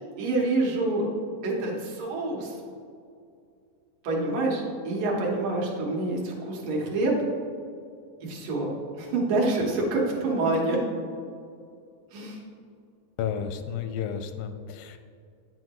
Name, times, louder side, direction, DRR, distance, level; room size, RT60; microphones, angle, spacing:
voice 1, 0.2-1.1 1.4-2.5 4.0-7.1 8.2-8.7 8.9-10.8 12.1-12.4, right 2 dB, 75° right, -3 dB, 3.0 m, -27 dB
voice 2, 13.2-15.0, left 8 dB, 85° left, 8 dB, 2.3 m, -32 dB
9.3 x 7.9 x 3.0 m, 2.4 s
omnidirectional pair, 3.9 m